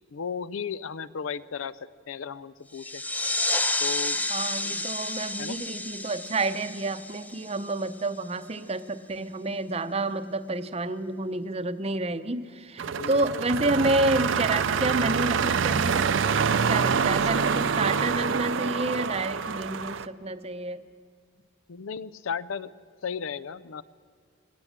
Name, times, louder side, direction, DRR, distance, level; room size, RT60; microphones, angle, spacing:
voice 1, 0.1-3.0 3.8-4.3 4.6-4.7 5.4-5.6 12.9-13.4 21.7-22.7 23.0-23.8, left 6 dB, 90° left, 18 dB, 0.5 m, -35 dB
sound 1, 2.7-8.1, left 2 dB, 10° left, 0.4 m, -30 dB
voice 2, 4.3-20.8, right 2 dB, 30° right, 11 dB, 0.7 m, -29 dB
sound 2, 12.8-20.1, right 6 dB, 70° right, 0.5 m, -26 dB
19.5 x 18.0 x 7.4 m, 2.1 s
head